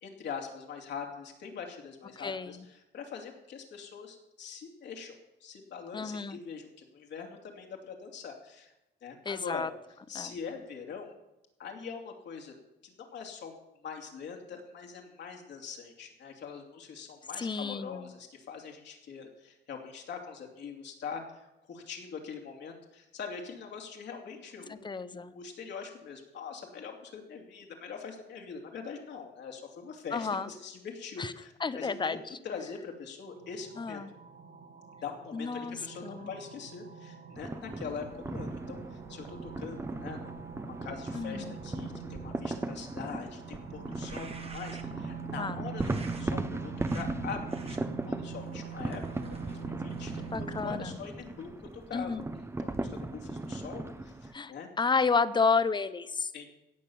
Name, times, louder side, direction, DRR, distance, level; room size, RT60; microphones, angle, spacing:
voice 1, 0.0-8.7 9.0-9.7 10.1-11.1 11.6-12.6 12.8-13.5 13.8-34.0 35.0-40.4 40.8-47.8 48.0-49.0 49.3-52.2 52.6-54.7 56.3-56.5, left 6 dB, 70° left, 1 dB, 2.7 m, -43 dB
voice 2, 2.2-2.5 5.9-6.4 9.2-9.7 10.1-10.4 17.4-18.1 24.7-25.3 30.1-30.5 31.2-31.3 31.6-32.4 33.8-34.1 35.3-35.8 36.0-36.3 41.1-41.5 45.4-45.7 50.3-51.0 51.9-52.2 54.3-56.3, left 4 dB, 25° left, 14 dB, 0.7 m, -31 dB
sound 1, 33.3-50.9, right 8 dB, 75° right, 2.1 m, -45 dB
sound 2, 37.4-54.3, right 2 dB, 15° right, 0.8 m, -38 dB
sound 3, 43.9-45.1 45.8-46.3 46.8-47.1 47.5-47.8 48.4-51.0, right 3 dB, 30° right, 1.5 m, -50 dB
17.0 x 6.5 x 7.1 m, 0.95 s
cardioid pair, 115°, 19 cm